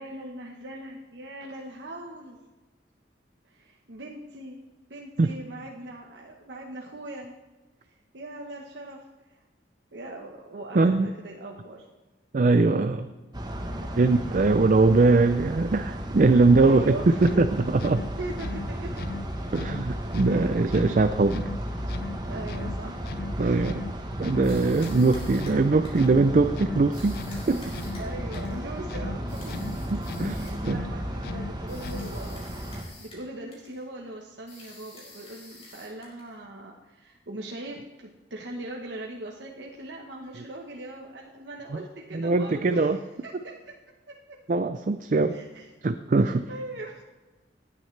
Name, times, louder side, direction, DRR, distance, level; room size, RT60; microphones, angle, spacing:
voice 1, 0.0-2.4 3.5-4.6 4.9-7.4 7.8-9.0 9.3-9.4 9.9-11.9 13.7-13.9 14.3-14.4 16.5-17.4 18.2-19.1 20.2-20.9 22.2-23.7 28.0-29.8 30.3-32.5 33.0-42.9 43.2-43.5 45.3-45.7 46.2-47.0, right 1 dB, 75° right, -1 dB, 1.1 m, -40 dB
voice 2, 10.7-11.1 12.3-13.1 14.0-16.9 17.2-18.0 19.5-21.4 23.4-23.8 24.2-27.2 27.5-27.7 29.9-30.8 42.1-43.0 44.5-45.4 45.8-46.5, right 3 dB, 45° right, 9 dB, 0.4 m, -21 dB
sound 1, 13.3-32.8, equal, 25° right, 1.0 m, -34 dB
sound 2, 17.1-32.4, left 4 dB, 55° left, 0.3 m, -40 dB
sound 3, 24.4-26.2 26.9-28.6 29.3-30.7 31.7-33.3 33.5-33.8 34.5-36.4, left 2 dB, 35° left, 4.6 m, -49 dB
19.0 x 9.4 x 3.3 m, 1.2 s
head